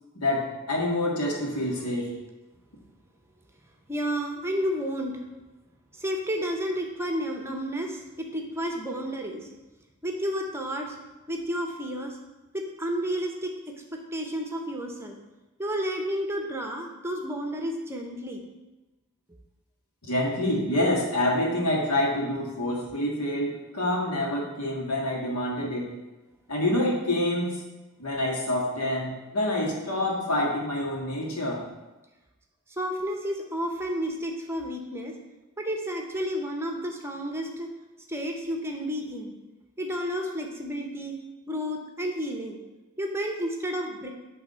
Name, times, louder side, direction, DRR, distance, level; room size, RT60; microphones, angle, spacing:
voice 1, 0.2-2.1 20.1-25.9 26.5-27.6 28.0-31.6, left 1 dB, 85° left, -2 dB, 2.0 m, -27 dB
voice 2, 1.5-1.8 3.9-5.2 5.9-9.5 10.0-11.0 11.3-12.2 12.5-15.1 15.6-18.4 32.8-35.1 35.6-37.7 38.1-39.3 39.8-41.2 41.5-42.6 43.0-44.1, equal, 10° right, 2 dB, 0.8 m, -31 dB
9.4 x 3.4 x 5.6 m, 1.1 s
head